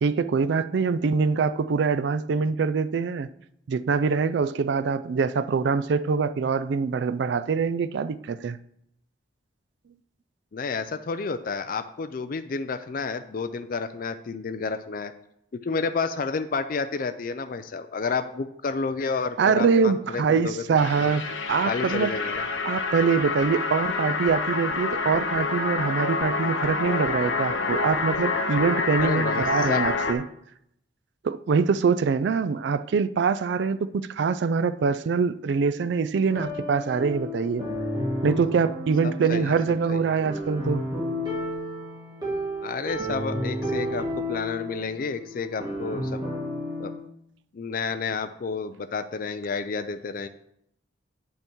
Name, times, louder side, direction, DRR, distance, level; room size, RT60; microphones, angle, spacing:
voice 1, 0.0-3.3 3.7-8.6 19.4-22.1 22.6-30.2 31.2-37.6 38.2-40.8, right 5 dB, 60° right, 0.3 m, -24 dB
voice 2, 10.5-15.1 15.5-20.6 21.0-21.2 21.7-22.4 29.0-29.8 39.0-39.6 39.9-40.2 42.6-46.2 46.8-46.9 47.5-50.3, left 4 dB, 45° left, 0.4 m, -30 dB
sound 1, 20.8-30.1, left 4 dB, 80° left, 0.8 m, -27 dB
sound 2, 36.3-47.0, left 1 dB, 20° right, 1.8 m, -32 dB
8.4 x 5.5 x 4.5 m
head